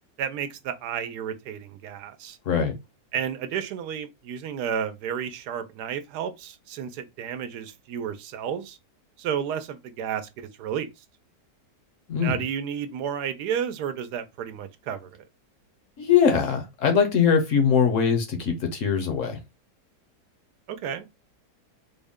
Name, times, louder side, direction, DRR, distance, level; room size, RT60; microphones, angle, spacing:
voice 1, 0.2-2.4 3.1-8.8 9.2-10.9 12.2-15.1 20.7-21.1, right 8 dB, 80° right, 1.1 m, -32 dB
voice 2, 16.0-19.4, left 7 dB, 60° left, 0.9 m, -21 dB
3.8 x 2.1 x 3.5 m
omnidirectional pair, 1.7 m